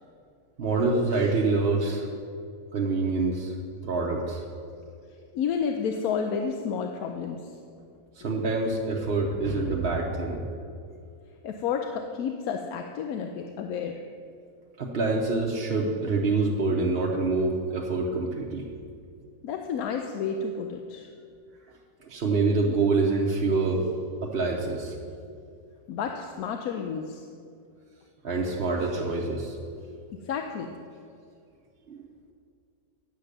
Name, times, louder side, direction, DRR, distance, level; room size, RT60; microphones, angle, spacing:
voice 1, 0.6-2.1 2.7-3.6 3.8-4.4 8.2-10.5 14.8-18.7 22.0-23.9 24.2-25.0 28.2-29.8 31.9-32.1, right 3 dB, 45° right, -2 dB, 1.0 m, -26 dB
voice 2, 5.3-7.6 11.4-14.0 19.4-21.1 25.9-27.2 30.2-30.8, left 6 dB, 80° left, 4 dB, 1.1 m, -31 dB
10.0 x 7.4 x 6.6 m, 2.4 s
omnidirectional pair, 1.6 m